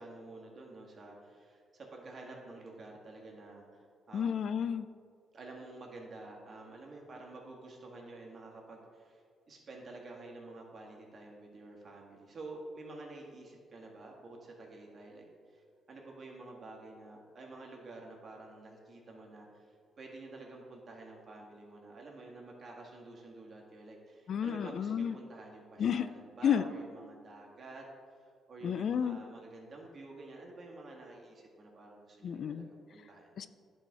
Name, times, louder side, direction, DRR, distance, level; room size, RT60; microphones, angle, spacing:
voice 1, 0.0-4.4 5.3-27.9 28.2-33.3, right 2 dB, 40° right, -1 dB, 1.8 m, -50 dB
voice 2, 4.1-4.9 24.3-25.1 25.8-26.1 26.4-26.6 28.6-29.2 32.2-32.7 33.4-33.5, left 8 dB, 60° left, 12 dB, 0.3 m, -31 dB
10.5 x 4.3 x 4.8 m, 2.1 s
cardioid pair, 90°, 0 cm